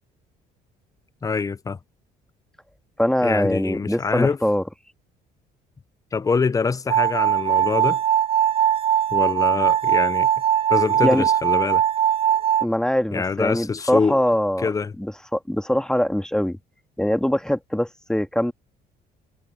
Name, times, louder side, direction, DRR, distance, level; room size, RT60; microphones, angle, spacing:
voice 1, 1.2-1.8 3.2-4.4 6.1-8.0 9.1-10.3 10.7-11.8 13.1-14.2 14.6-14.9, left 5 dB, 20° left, 0.6 m, -24 dB
voice 2, 3.0-4.6 11.0-11.3 12.3-14.7 15.0-16.6 17.0-18.5, equal, 5° left, 1.8 m, -23 dB
sound 1, 6.9-12.7, right 10 dB, 35° right, 0.5 m, -20 dB
cardioid pair, 110°, 17 cm